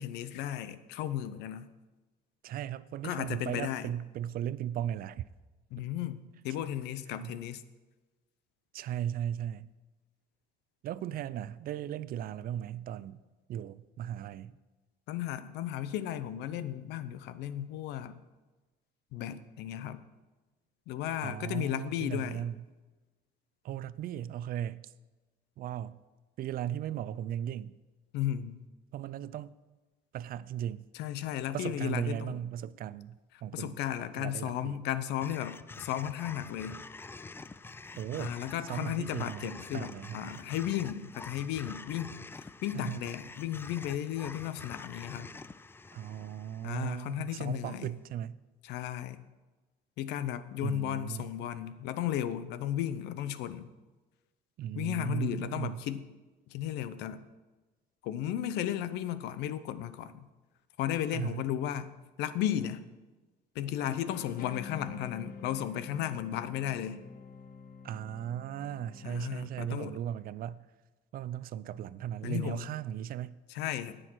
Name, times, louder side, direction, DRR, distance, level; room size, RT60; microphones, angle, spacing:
voice 1, 0.0-1.7 3.0-3.9 5.7-7.6 15.1-18.2 19.1-20.0 20.9-22.4 28.1-28.7 30.9-32.4 33.5-36.8 38.2-42.1 42.4-45.3 46.6-47.9 48.6-49.3 50.0-53.7 54.7-56.1 56.5-57.2 58.0-60.3 60.8-62.8 63.5-67.0 69.0-70.0 72.2-72.7 73.5-74.0, left 11 dB, 85° left, 0.7 m, -35 dB
voice 2, 2.4-5.2 5.8-5.9 7.2-7.3 8.7-9.7 10.8-13.2 13.5-14.6 21.2-22.6 23.6-24.9 25.6-26.0 26.4-27.8 28.9-29.6 30.1-30.9 31.5-33.8 34.2-34.8 38.0-38.4 38.7-40.4 42.7-43.0 45.9-48.4 50.6-51.3 54.6-55.8 61.1-61.5 67.8-70.7 71.1-73.4, right 11 dB, 60° right, 0.5 m, -37 dB
sound 1, 35.2-47.5, left 3 dB, 15° left, 0.3 m, -47 dB
sound 2, 63.8-69.7, left 5 dB, 60° left, 1.1 m, -47 dB
17.5 x 6.3 x 4.6 m
cardioid pair, 110°, 17 cm